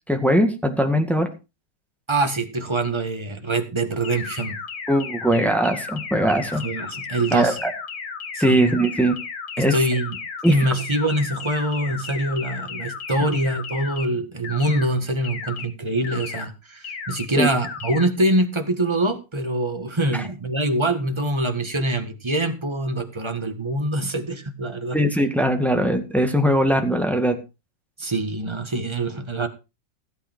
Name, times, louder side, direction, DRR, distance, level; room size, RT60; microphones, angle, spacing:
voice 1, 0.1-1.3 4.9-6.6 7.3-7.7 8.4-9.2 9.6-9.8 10.4-10.5 17.4-17.5 20.1-20.2 24.9-27.4, right 1 dB, ahead, 4 dB, 1.7 m, -20 dB
voice 2, 2.1-4.6 6.5-7.6 8.3-8.6 9.6-10.2 10.5-25.0 28.0-29.5, right 1 dB, 15° right, 6 dB, 1.6 m, -24 dB
sound 1, 4.0-14.1 14.4-14.9 15.2-15.7 16.0-16.5 16.8-17.3 17.6-18.1, left 5 dB, 55° left, 2.0 m, -34 dB
16.0 x 8.3 x 4.5 m, 0.29 s
omnidirectional pair, 2.0 m